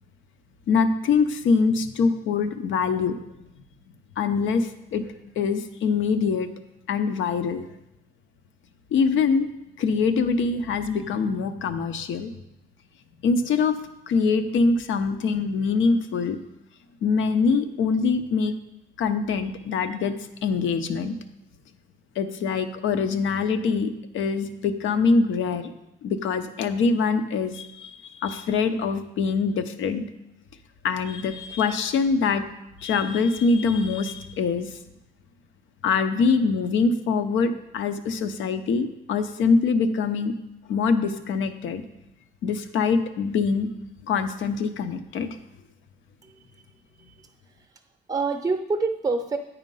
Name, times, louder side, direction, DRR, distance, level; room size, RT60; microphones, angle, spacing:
voice 1, 0.7-3.2 4.2-5.0 5.4-6.5 6.9-7.7 8.9-9.5 9.8-12.3 13.2-13.8 14.1-16.4 17.0-18.5 19.0-20.2 20.4-21.2 22.2-25.7 26.0-30.0 30.8-32.4 32.8-34.8 35.8-40.3 40.7-41.8 42.4-43.7 44.1-45.4, left 4 dB, 75° left, 10 dB, 0.7 m, -24 dB
voice 2, 46.2-46.6 47.0-47.8 48.1-49.4, right 3 dB, 20° right, 5 dB, 0.6 m, -28 dB
9.1 x 4.3 x 5.4 m, 0.88 s
cardioid pair, 90°, 20 cm